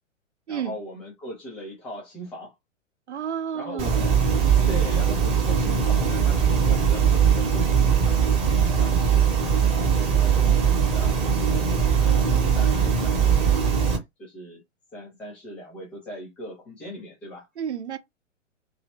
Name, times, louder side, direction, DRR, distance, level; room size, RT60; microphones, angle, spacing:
voice 1, 0.5-2.5 3.5-4.2 4.7-8.5 8.8-9.3 9.7-13.8 14.2-14.6 14.9-17.4, left 1 dB, 5° left, 0.4 m, -40 dB
voice 2, 3.1-4.1 17.6-18.0, right 8 dB, 65° right, 0.6 m, -31 dB
sound 1, 3.8-14.0, right 7 dB, 15° right, 0.9 m, -20 dB
2.8 x 2.8 x 3.0 m
figure-of-eight pair, 115°, 38 cm